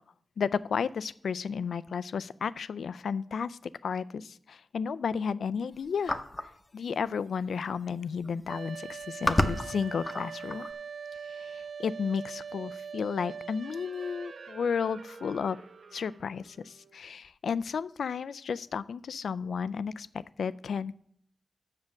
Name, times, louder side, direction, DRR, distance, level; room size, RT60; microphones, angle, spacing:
voice 1, 0.4-6.2 6.7-10.7 11.2-15.6 15.9-21.0, left 6 dB, 90° left, 17 dB, 0.3 m, -33 dB
sound 1, 6.1-6.5 7.6-7.7 7.9-8.3 8.9-10.7, left 2 dB, 25° left, 0.7 m, -30 dB
sound 2, 8.5-17.0, right 6 dB, 65° right, 0.6 m, -43 dB
7.5 x 6.3 x 7.2 m, 0.64 s
wide cardioid pair, 95°, 0 cm